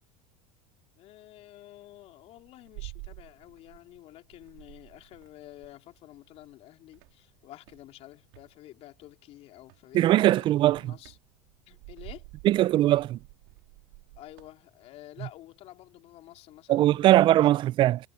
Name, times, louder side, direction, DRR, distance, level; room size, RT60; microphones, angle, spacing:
voice 1, 1.0-11.2 11.7-12.3 14.2-17.5, left 15 dB, 45° left, 3.6 m, -50 dB
sound 1, 2.0-4.0 4.3-6.5 6.9-8.5 9.6-9.9 10.3-14.6, right 32 dB, 70° right, 3.4 m, -49 dB
voice 2, 9.9-10.8 12.4-13.2 16.7-18.0, right 14 dB, 35° right, 0.4 m, -20 dB
supercardioid pair, 130°, 14 cm